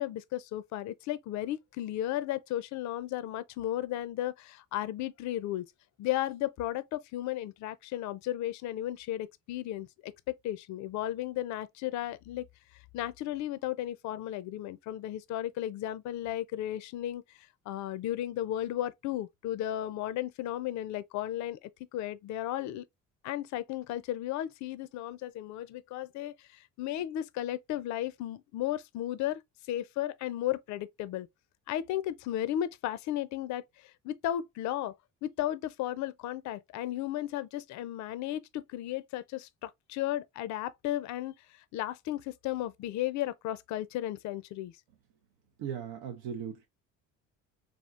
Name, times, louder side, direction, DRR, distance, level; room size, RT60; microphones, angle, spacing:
voice 1, 0.0-5.7 6.0-10.1 10.4-12.4 12.9-17.2 17.7-22.8 23.2-29.4 29.7-31.3 31.7-34.9 35.2-41.3 41.7-44.7, left 13 dB, 55° left, 0.4 m, -34 dB
voice 2, 45.6-46.7, right 8 dB, 75° right, 0.6 m, -38 dB
3.5 x 2.4 x 2.4 m
supercardioid pair, 70°, 36 cm